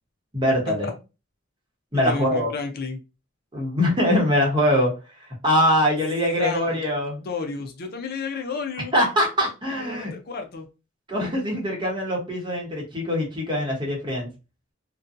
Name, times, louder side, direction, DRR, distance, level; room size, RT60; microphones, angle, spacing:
voice 1, 0.3-0.9 1.9-2.5 3.5-4.9 5.4-7.2 8.9-10.1 11.1-14.3, equal, 25° right, -1 dB, 0.9 m, -22 dB
voice 2, 2.0-3.0 6.4-6.8 7.2-8.9 9.8-10.7, left 4 dB, 50° left, 4 dB, 0.5 m, -31 dB
2.6 x 2.2 x 2.5 m, 0.29 s
head